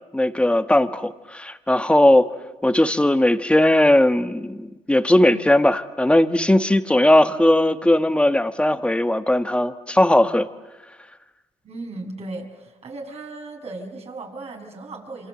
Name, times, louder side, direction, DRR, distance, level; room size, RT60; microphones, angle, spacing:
voice 1, 0.1-2.3 2.6-10.5, left 1 dB, 10° left, 1.7 m, -18 dB
voice 2, 11.6-15.3, right 2 dB, 50° right, 7.0 m, -36 dB
27.0 x 26.5 x 8.0 m
supercardioid pair, 60°, 14 cm